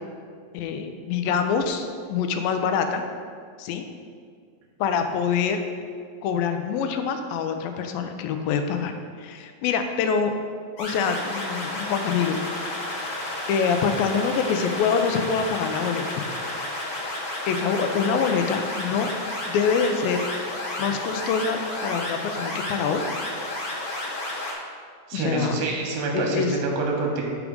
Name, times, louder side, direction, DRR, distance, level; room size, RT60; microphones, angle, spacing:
voice 1, 0.5-3.0 3.6-3.9 4.8-5.6 6.2-8.9 9.2-10.3 10.8-12.4 13.5-16.2 17.5-19.1 19.5-20.3 20.8-23.0 25.1-25.6 26.1-26.6, left 6 dB, 85° left, 7 dB, 2.4 m, -25 dB
sound 1, 10.8-24.5, left 1 dB, 55° left, 1.1 m, -31 dB
voice 2, 25.1-27.2, right 3 dB, 80° right, 0 dB, 3.1 m, -26 dB
10.0 x 4.8 x 5.2 m, 2.1 s
omnidirectional pair, 4.3 m